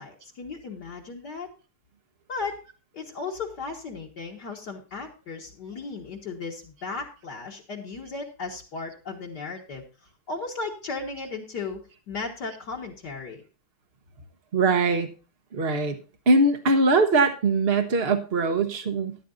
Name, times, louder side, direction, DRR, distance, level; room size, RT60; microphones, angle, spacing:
voice 1, 0.0-1.5 2.3-2.6 2.9-9.8 10.3-13.4, left 4 dB, 55° left, -1 dB, 2.1 m, -35 dB
voice 2, 14.5-15.1 15.5-16.0 16.3-19.2, right 3 dB, 40° right, 5 dB, 0.8 m, -22 dB
14.0 x 11.0 x 2.6 m, 0.34 s
omnidirectional pair, 2.3 m